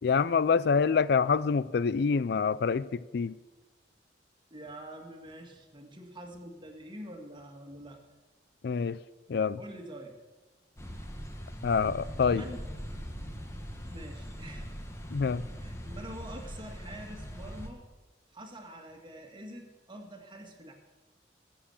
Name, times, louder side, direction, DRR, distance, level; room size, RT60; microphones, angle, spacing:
voice 1, 0.0-3.3 8.6-9.0 9.3-9.6 11.6-12.4 15.1-15.5, left 5 dB, 60° left, 17 dB, 0.4 m, -26 dB
voice 2, 4.5-8.0 9.6-10.1 12.3-12.6 13.8-14.7 15.6-17.8 18.3-20.7, right 1 dB, 25° right, 3 dB, 2.0 m, -45 dB
sound 1, 10.8-17.7, equal, 15° left, 1.5 m, -41 dB
21.0 x 7.3 x 7.1 m, 1.2 s
head